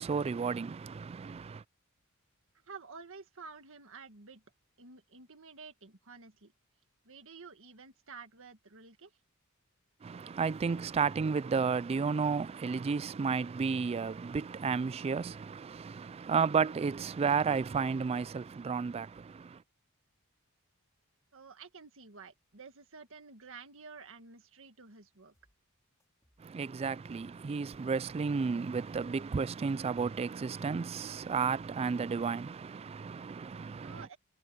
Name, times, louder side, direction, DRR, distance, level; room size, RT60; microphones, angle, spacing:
voice 1, 0.0-1.6 10.0-19.6 26.4-34.1, right 5 dB, 30° right, 0.3 m, -32 dB
voice 2, 2.6-4.4 4.8-6.5 7.1-9.1 21.3-25.3 33.8-34.2, right 4 dB, 65° right, 1.8 m, -51 dB
sound 1, 25.3-25.6 26.0-27.4 27.8-29.1 29.5-30.9 31.3-32.5, equal, 15° left, 4.2 m, -73 dB
head